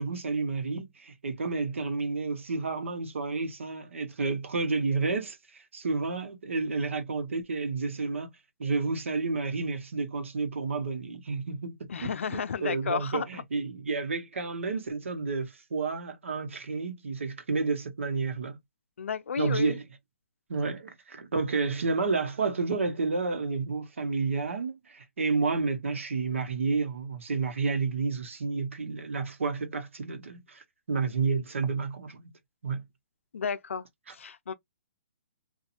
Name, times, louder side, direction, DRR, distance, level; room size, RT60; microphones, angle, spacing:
voice 1, 0.0-8.3 8.6-18.6 19.4-19.8 20.5-32.3 32.6-32.8, right 4 dB, 85° right, 0.9 m, -30 dB
voice 2, 11.9-13.4 19.0-19.8 33.3-34.5, left 6 dB, 85° left, 0.4 m, -32 dB
2.5 x 2.3 x 2.7 m
hypercardioid pair, 155°, 7 cm